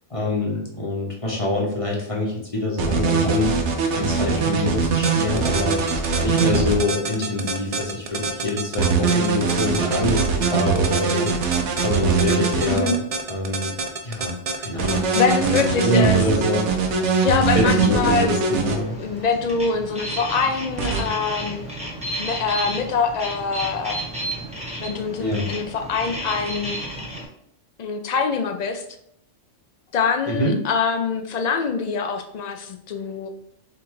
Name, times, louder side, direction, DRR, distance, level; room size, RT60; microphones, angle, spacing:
voice 1, 0.1-3.6 3.9-11.3 11.8-13.0 13.3-13.7 14.0-15.0 15.4-16.7 17.5-19.0 25.2-25.5 30.3-30.6, left 1 dB, 30° left, -2 dB, 0.8 m, -25 dB
sound 1, 2.8-6.8 8.8-12.8 14.8-18.8 20.8-21.0, right 6 dB, 75° right, 1.0 m, -22 dB
sound 2, 4.9-15.8, right 4 dB, 60° right, 0.4 m, -27 dB
voice 2, 15.1-16.2 17.2-18.3 19.0-21.6 22.2-24.0 24.8-26.8 27.8-28.8 29.9-33.3, left 5 dB, 70° left, 5 dB, 0.4 m, -24 dB
sound 3, 18.7-27.2, right 1 dB, 5° right, 1.0 m, -32 dB
3.6 x 2.4 x 4.5 m, 0.70 s
omnidirectional pair, 1.2 m